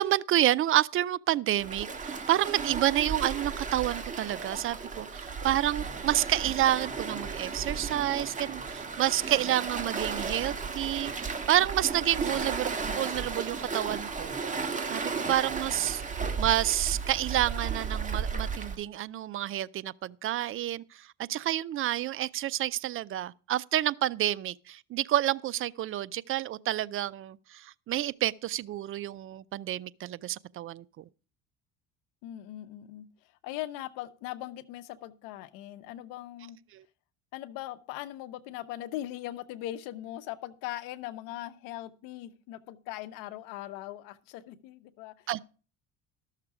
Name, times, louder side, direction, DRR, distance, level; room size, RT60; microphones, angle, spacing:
voice 1, 0.0-14.4 14.9-16.0 16.4-31.0 36.7-36.8 45.3-45.4, right 13 dB, 40° right, 0.4 m, -29 dB
Waves surf, 1.6-18.8, right 5 dB, 25° right, 1.6 m, -34 dB
voice 2, 32.2-33.1 33.4-36.6 37.3-45.4, left 14 dB, 85° left, 0.9 m, -40 dB
13.0 x 6.6 x 4.7 m
cardioid pair, 105°, 32 cm